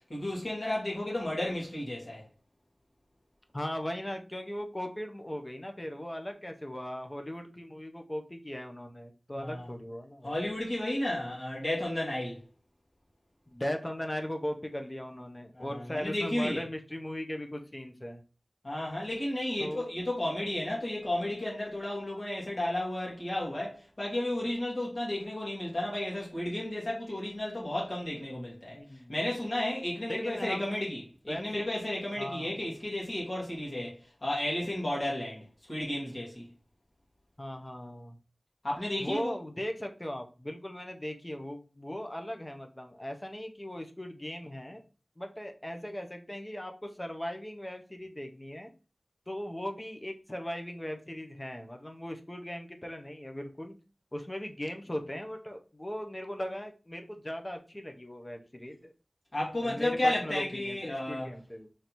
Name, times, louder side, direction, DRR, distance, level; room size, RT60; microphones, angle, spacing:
voice 1, 0.1-2.3 9.4-9.7 10.2-12.4 15.5-16.6 18.6-28.8 29.1-36.5 38.6-39.3 59.3-61.3, left 1 dB, 50° left, 1.6 m, -33 dB
voice 2, 3.5-10.3 13.5-18.2 19.6-19.8 28.7-29.1 30.1-30.9 31.3-31.8 32.2-32.6 37.4-38.2 39.0-44.8 45.2-48.7 49.3-53.7 54.1-58.9 59.6-61.7, left 1 dB, 25° left, 0.6 m, -38 dB
4.0 x 3.2 x 2.9 m
wide cardioid pair, 55°, 0 cm